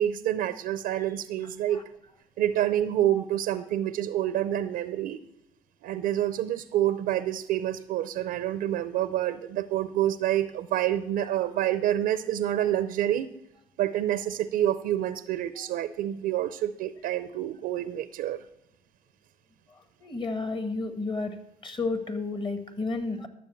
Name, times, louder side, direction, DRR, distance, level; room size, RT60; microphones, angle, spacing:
voice 1, 0.0-1.8 2.4-5.2 5.8-13.3 13.8-18.4, right 12 dB, 80° right, 13 dB, 0.5 m, -27 dB
voice 2, 20.0-21.3 21.6-23.3, left 3 dB, 35° left, 8 dB, 1.8 m, -31 dB
11.5 x 7.1 x 7.2 m, 0.80 s
supercardioid pair, 65°, 15 cm